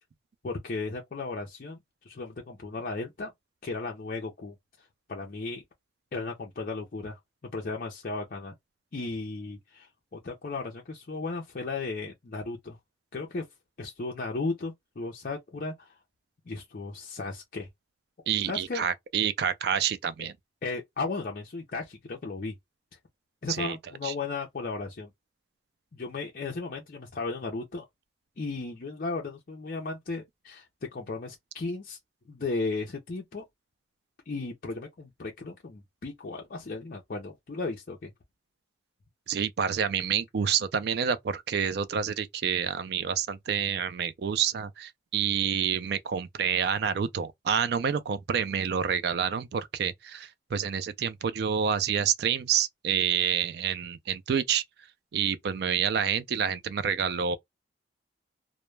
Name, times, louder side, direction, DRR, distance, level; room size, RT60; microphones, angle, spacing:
voice 1, 0.4-1.8 2.0-3.3 3.6-5.6 6.1-8.5 8.9-12.8 13.1-13.5 13.8-16.0 16.5-17.7 18.5-18.9 20.2-20.3 20.6-22.6 23.4-25.1 25.9-27.9 28.4-30.7 30.9-32.0 32.3-33.4 34.3-38.1, left 3 dB, 45° left, 0.5 m, -35 dB
voice 2, 18.3-20.3 23.5-23.8 24.0-24.1 39.3-54.6 55.1-57.4, right 8 dB, 55° right, 0.3 m, -28 dB
2.1 x 2.0 x 3.1 m
head